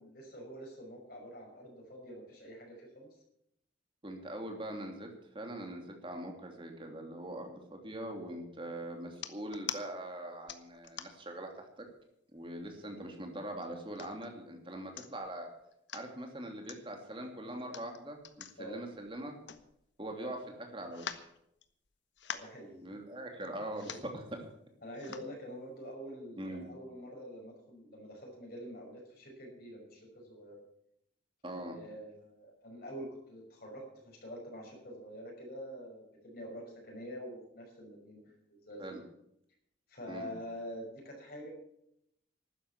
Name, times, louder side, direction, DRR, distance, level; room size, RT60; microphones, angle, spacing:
voice 1, 0.0-3.1 7.9-8.5 18.6-18.8 20.2-20.4 22.3-23.0 23.5-24.0 24.8-30.6 31.5-39.0 39.9-41.5, equal, 50° left, -1 dB, 5.9 m, -46 dB
voice 2, 4.0-11.5 12.3-15.5 15.9-19.4 20.0-21.3 22.8-24.5 26.4-26.7 31.4-31.8 38.8-39.0 40.1-40.3, right 1 dB, 25° right, 3 dB, 2.8 m, -42 dB
sound 1, 9.1-9.8 10.5-11.3 11.9-12.0 12.3-13.0 13.6-14.3 14.7-14.8 15.0-15.3 15.7-16.1 16.7-16.8 17.6-20.1 20.4-20.5 20.9-21.9 22.2-22.6 23.4-23.5 23.7-24.1 24.9-25.3 25.9-26.0, left 8 dB, 70° left, 1.1 m, -44 dB
12.5 x 10.0 x 8.3 m, 0.76 s
head